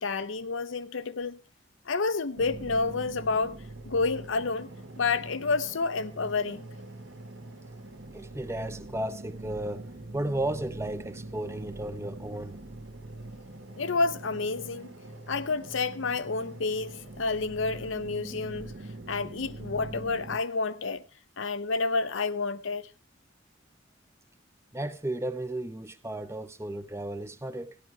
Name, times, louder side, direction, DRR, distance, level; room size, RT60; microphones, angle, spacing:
voice 1, 0.0-1.4 1.9-3.6 3.9-4.7 5.0-6.7 13.7-14.9 15.3-18.7 19.1-21.0 21.4-22.8, left 4 dB, 70° left, 0.7 m, -29 dB
sound 1, 2.4-20.4, right 2 dB, 65° right, 1.6 m, -43 dB
voice 2, 8.1-12.6 24.7-27.8, right 1 dB, 15° right, 0.7 m, -34 dB
15.0 x 11.0 x 4.7 m
head